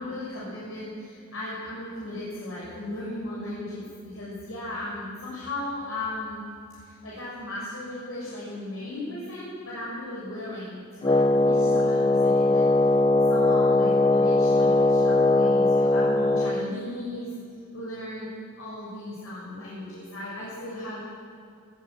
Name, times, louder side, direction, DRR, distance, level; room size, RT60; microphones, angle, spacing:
voice 1, 0.0-6.4 6.7-12.7 13.3-17.3 17.7-21.0, left 1 dB, 75° left, -7 dB, 6.6 m, -36 dB
Wind instrument woodwind instrument, 11.0-16.7, left 2 dB, 25° left, 0.6 m, -20 dB
18.5 x 18.0 x 9.2 m, 2.4 s
head